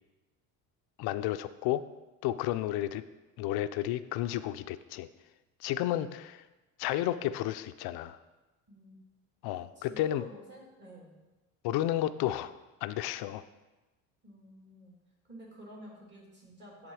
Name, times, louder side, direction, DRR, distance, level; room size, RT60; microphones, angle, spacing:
voice 1, 1.0-1.8 2.2-3.0 3.4-5.1 5.6-6.5 6.8-8.2 9.4-10.2 11.6-12.5 12.8-13.4, left 13 dB, 70° left, 12 dB, 0.5 m, -32 dB
voice 2, 9.8-11.2 14.2-14.9 15.3-16.9, equal, 25° right, -3 dB, 2.7 m, -51 dB
11.0 x 3.7 x 4.8 m, 1.1 s
cardioid pair, 105°, 40 cm